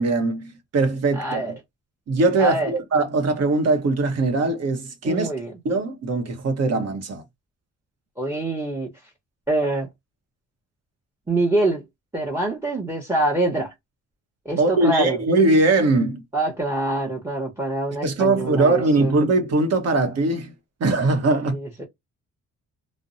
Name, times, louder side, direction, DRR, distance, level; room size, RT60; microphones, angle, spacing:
voice 1, 0.0-1.6 2.1-5.3 5.6-7.2 14.6-16.2 18.0-20.5 20.8-21.6, right 2 dB, 55° right, 0.9 m, -21 dB
voice 2, 1.2-1.5 2.4-2.7 5.0-5.5 8.2-8.9 9.5-9.9 11.3-11.8 12.1-13.7 14.4-15.2 16.3-19.1 21.5-21.8, right 2 dB, 10° right, 0.9 m, -25 dB
2.5 x 2.1 x 2.6 m
cardioid pair, 90°, 30 cm